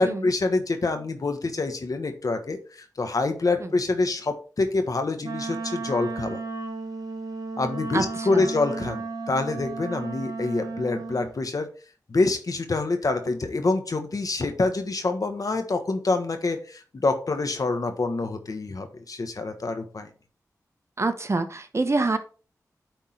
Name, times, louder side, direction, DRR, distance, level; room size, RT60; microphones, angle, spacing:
voice 1, 0.0-6.4 7.6-11.7 12.1-20.1, left 3 dB, 60° left, 7 dB, 1.4 m, -26 dB
Wind instrument woodwind instrument, 5.2-11.3, right 3 dB, 75° right, 1.5 m, -34 dB
voice 2, 7.9-8.5 21.0-22.2, right 3 dB, 45° right, 8 dB, 1.1 m, -26 dB
9.2 x 3.7 x 4.4 m, 0.37 s
cardioid pair, 50°, 7 cm